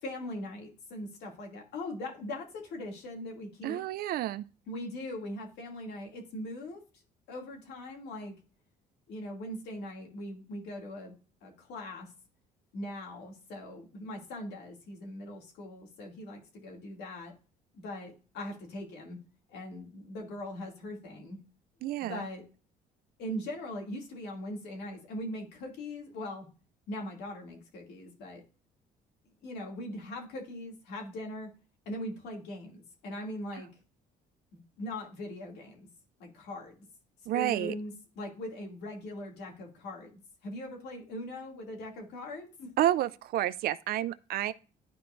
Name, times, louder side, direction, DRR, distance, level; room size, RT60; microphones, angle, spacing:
voice 1, 0.0-3.8 4.7-6.8 7.3-8.4 9.1-11.1 11.4-12.1 12.7-17.3 17.7-19.2 19.5-21.4 22.0-22.4 23.2-26.5 26.9-28.4 29.4-31.5 31.9-33.7 34.5-35.9 36.2-36.9 37.3-42.7, left 1 dB, 80° left, 2.4 m, -40 dB
voice 2, 3.6-4.5 21.8-22.2 37.3-37.7 42.8-44.5, right 13 dB, 65° right, 0.5 m, -30 dB
12.0 x 4.6 x 2.5 m
cardioid pair, 110°, 17 cm